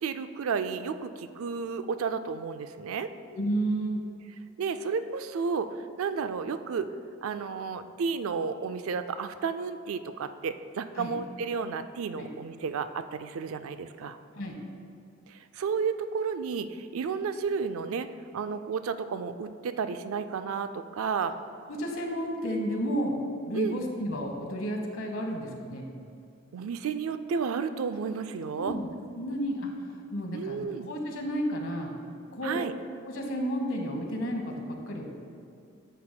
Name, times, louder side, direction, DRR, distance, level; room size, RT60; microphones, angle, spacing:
voice 1, 0.0-3.1 4.6-6.9 7.2-14.2 15.3-18.1 18.3-21.3 23.5-23.8 26.5-28.8 30.3-30.9 32.4-32.7, right 5 dB, 90° right, 10 dB, 0.4 m, -32 dB
voice 2, 3.3-4.0 11.0-11.1 12.2-12.3 14.3-14.6 21.7-23.2 23.5-25.9 28.6-28.9 29.2-29.7 30.1-30.6 30.9-31.9 32.3-32.6 33.0-35.1, equal, 80° left, 2 dB, 1.1 m, -31 dB
10.0 x 7.6 x 2.2 m, 2.5 s
head